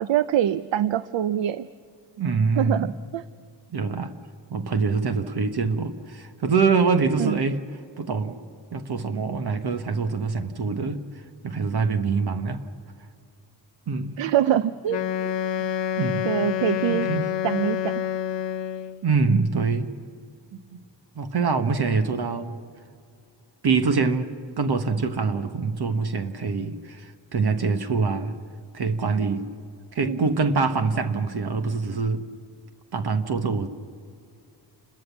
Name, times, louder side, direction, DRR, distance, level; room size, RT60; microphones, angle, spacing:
voice 1, 0.0-1.7 2.6-3.2 7.2-7.4 14.2-15.0 16.2-17.1 17.4-18.0 30.0-30.2, right 11 dB, 90° right, 14 dB, 0.6 m, -24 dB
voice 2, 2.2-2.9 3.7-4.1 4.5-7.6 8.0-8.4 8.7-11.0 11.4-12.6 13.9-14.2 16.0-16.3 16.9-17.3 19.0-19.9 20.7-20.8 21.1-22.6 23.6-24.3 24.6-28.4 28.7-29.5 29.9-32.3 32.9-33.7, right 4 dB, 60° right, 7 dB, 1.4 m, -24 dB
Wind instrument woodwind instrument, 14.9-19.0, left 9 dB, 80° left, 0.8 m, -27 dB
30.0 x 14.0 x 7.3 m, 2.3 s
cardioid pair, 85°, 43 cm